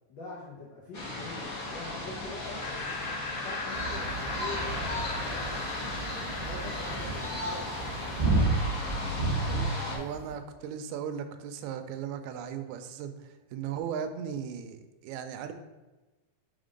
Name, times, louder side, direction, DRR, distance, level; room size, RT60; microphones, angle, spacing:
voice 1, 0.1-2.9 3.3-6.1 6.4-8.5 9.2-10.1, left 2 dB, 90° left, -4 dB, 1.0 m, -44 dB
sound 1, 0.9-10.0, left 2 dB, 60° left, 0.9 m, -36 dB
Laughter, 2.6-7.9, left 3 dB, 45° left, 1.6 m, -39 dB
sound 2, 3.7-10.3, right 3 dB, 25° right, 1.0 m, -32 dB
voice 2, 9.9-15.5, right 8 dB, 80° right, 7 dB, 1.9 m, -37 dB
5.0 x 3.9 x 5.1 m, 1.1 s
omnidirectional pair, 3.5 m